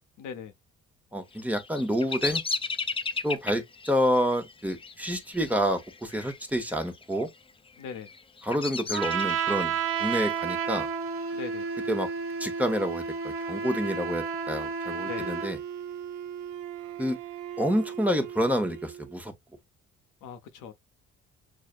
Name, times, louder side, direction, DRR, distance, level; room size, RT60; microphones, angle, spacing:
voice 1, 0.2-0.5 7.8-8.1 11.3-11.7 15.0-15.3 20.2-20.7, left 7 dB, 85° left, 0.7 m, -40 dB
voice 2, 1.1-2.4 3.2-7.3 8.4-10.9 11.9-12.1 12.4-15.6 17.0-17.2 17.6-19.3, equal, 5° right, 0.8 m, -28 dB
Bird vocalization bird call bird song, 1.3-6.4 6.6-7.2 7.8-9.8, left 4 dB, 20° left, 0.4 m, -34 dB
Trumpet, 8.9-15.6, right 6 dB, 45° right, 0.7 m, -31 dB
Wind instrument woodwind instrument, 15.1-19.2, right 10 dB, 85° right, 0.6 m, -39 dB
6.2 x 2.1 x 2.4 m
cardioid pair, 90°, 30 cm